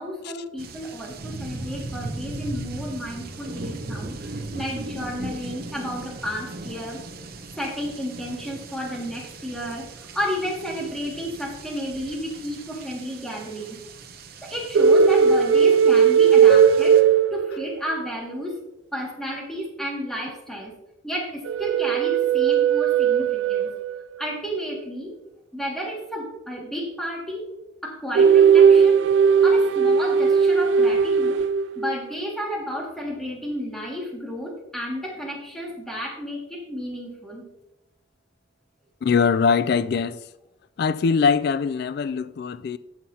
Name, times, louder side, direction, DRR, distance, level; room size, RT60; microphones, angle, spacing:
voice 1, 0.0-7.0 7.6-13.8 14.4-17.0 17.3-18.6 18.9-20.8 21.0-23.7 24.2-25.2 25.5-27.5 27.8-29.0 29.4-31.5 31.8-37.4, equal, ahead, 2.0 m, -32 dB
sound 1, 0.6-17.0, right 2 dB, 55° right, 0.8 m, -38 dB
sound 2, 14.7-17.9 21.5-24.1 28.1-32.0, right 6 dB, 75° right, 0.3 m, -17 dB
voice 2, 39.0-40.2 40.8-42.8, left 5 dB, 55° left, 0.3 m, -22 dB
15.5 x 5.9 x 2.8 m
head